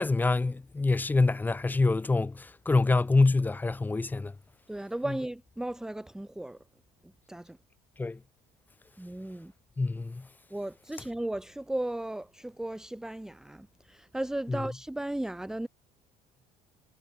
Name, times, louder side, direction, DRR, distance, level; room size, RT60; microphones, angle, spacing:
voice 1, 0.0-4.3 8.0-8.2 9.8-10.3 14.5-14.6, left 3 dB, 10° left, 1.6 m, -26 dB
voice 2, 4.7-6.6 7.0-7.6 9.0-9.5 10.5-15.7, right 1 dB, 5° right, 0.9 m, -36 dB
cardioid pair, 135°, 14 cm